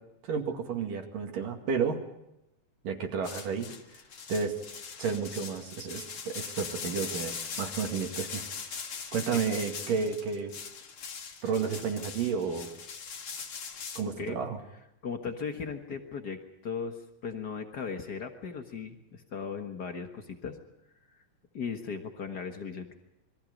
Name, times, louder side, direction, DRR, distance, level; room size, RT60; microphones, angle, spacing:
voice 1, 0.2-2.0 2.8-3.7 4.3-4.6 5.0-8.4 9.1-10.5 11.4-12.7 14.0-14.6, right 6 dB, 65° right, 3 dB, 3.7 m, -31 dB
sound 1, 3.2-14.0, left 6 dB, 45° left, 2.0 m, -40 dB
voice 2, 15.0-20.6 21.5-22.9, left 5 dB, 65° left, 5 dB, 1.0 m, -37 dB
27.5 x 22.0 x 5.3 m, 0.87 s
omnidirectional pair, 4.2 m